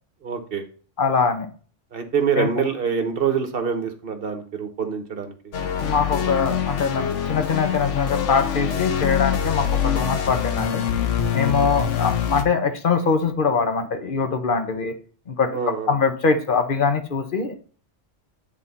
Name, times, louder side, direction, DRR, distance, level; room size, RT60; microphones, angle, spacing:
voice 1, 0.2-0.6 1.9-5.3 11.6-11.7 15.5-15.9, right 6 dB, 50° right, 6 dB, 1.2 m, -25 dB
voice 2, 1.0-1.5 2.4-2.5 5.8-10.8 11.3-14.9 15.3-15.6 15.9-17.5, left 5 dB, 45° left, 7 dB, 1.1 m, -23 dB
sound 1, 5.5-12.4, left 8 dB, 75° left, 1.2 m, -24 dB
10.0 x 3.7 x 4.1 m, 0.41 s
omnidirectional pair, 1.2 m